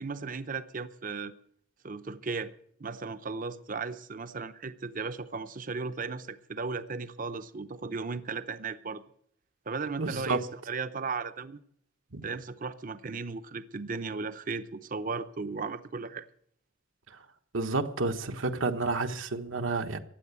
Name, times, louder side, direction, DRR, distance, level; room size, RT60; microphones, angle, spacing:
voice 1, 0.0-1.3 1.8-2.5 2.8-9.0 9.7-11.6 12.2-16.3, right 4 dB, 45° right, 0.7 m, -36 dB
voice 2, 10.0-10.4 12.1-12.3 17.5-20.0, right 3 dB, 80° right, 1.2 m, -30 dB
16.0 x 9.8 x 8.2 m
head